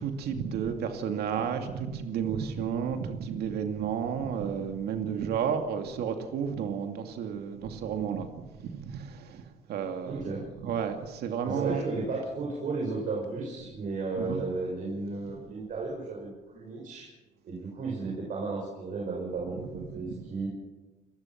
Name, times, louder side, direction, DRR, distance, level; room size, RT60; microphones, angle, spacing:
voice 1, 0.0-10.3 10.6-11.8 14.2-14.4 15.2-15.3 19.7-20.1, right 7 dB, 70° right, 2.5 m, -32 dB
voice 2, 10.0-10.4 11.4-17.1 17.4-20.5, right 3 dB, 50° right, 6.6 m, -34 dB
29.5 x 15.5 x 6.0 m
cardioid pair, 110°, 17 cm